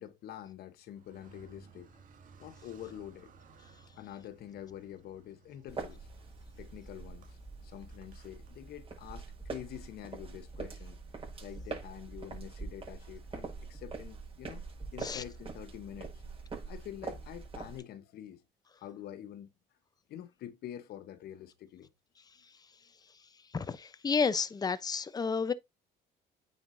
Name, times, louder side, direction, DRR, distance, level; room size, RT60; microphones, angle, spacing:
voice 1, 0.0-1.9 2.4-3.3 3.9-6.1 6.6-11.0 11.4-14.6 14.9-16.2 16.7-18.4 18.8-19.5 20.1-21.9, left 11 dB, 70° left, 1.1 m, -46 dB
Car, 0.9-9.2, right 5 dB, 55° right, 2.3 m, -59 dB
sound 1, 5.7-17.8, right 4 dB, 35° right, 5.5 m, -44 dB
voice 2, 23.5-25.5, left 5 dB, 25° left, 0.8 m, -31 dB
9.2 x 5.7 x 2.7 m
cardioid pair, 110°, 17 cm